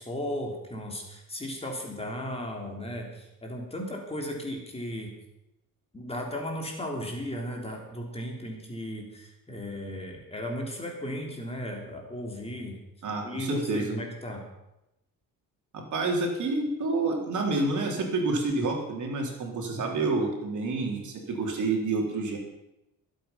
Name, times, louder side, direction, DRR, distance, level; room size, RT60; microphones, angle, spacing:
voice 1, 0.0-5.1 5.9-12.8 13.2-14.4, equal, 15° left, 0 dB, 3.4 m, -35 dB
voice 2, 13.0-14.0 15.7-22.4, right 3 dB, 55° right, 1 dB, 3.6 m, -28 dB
22.0 x 8.3 x 5.7 m, 0.90 s
cardioid pair, 110°, 35 cm